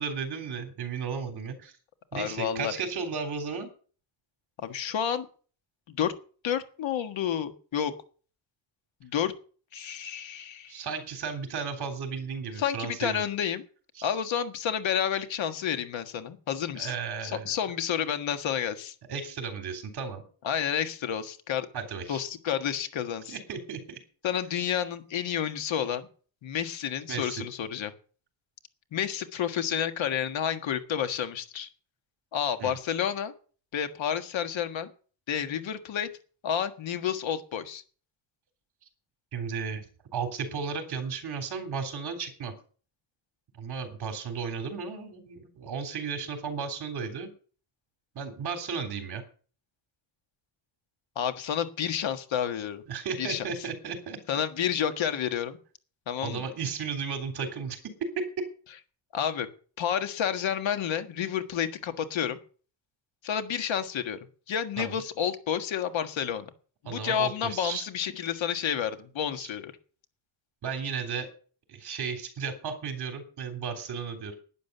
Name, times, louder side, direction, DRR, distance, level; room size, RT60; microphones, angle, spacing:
voice 1, 0.0-1.7 2.1-3.7 10.7-13.2 14.0-14.1 16.7-17.5 19.1-20.2 21.7-22.2 23.3-24.0 27.1-27.4 32.6-32.7 39.3-39.8 40.1-42.5 43.6-47.3 48.1-49.2 52.9-54.2 56.2-57.8 58.1-58.2 64.8-65.0 66.8-67.8 69.4-69.5 70.6-71.3 71.7-74.3, right 5 dB, 60° right, 6 dB, 3.6 m, -34 dB
voice 2, 2.1-2.7 4.6-5.3 5.9-6.1 6.4-7.9 9.0-9.3 9.7-10.8 12.6-13.6 14.0-16.9 17.2-18.9 20.4-21.7 22.1-23.4 24.2-26.1 26.4-27.9 28.9-31.7 32.3-33.3 33.7-34.9 35.3-36.1 36.4-37.8 51.1-52.8 53.2-53.4 54.3-55.6 56.1-56.4 59.1-59.5 59.8-62.4 63.2-64.2 64.5-66.5 66.8-69.7, left 9 dB, 85° left, 9 dB, 1.7 m, -30 dB
11.5 x 10.0 x 6.8 m, 0.41 s
wide cardioid pair, 170°, 45 cm